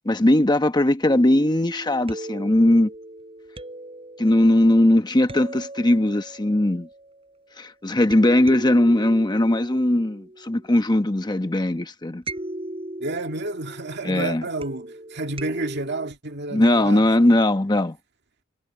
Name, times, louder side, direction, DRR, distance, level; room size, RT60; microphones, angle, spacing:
voice 1, 0.0-2.9 4.2-6.9 7.6-12.2 14.0-14.5 16.5-18.0, left 1 dB, 20° left, 1.0 m, -19 dB
sound 1, 1.1-7.5 8.1-11.1 12.3-16.1, right 1 dB, 30° right, 7.6 m, -38 dB
voice 2, 13.0-17.1, right 2 dB, 60° right, 2.2 m, -30 dB
head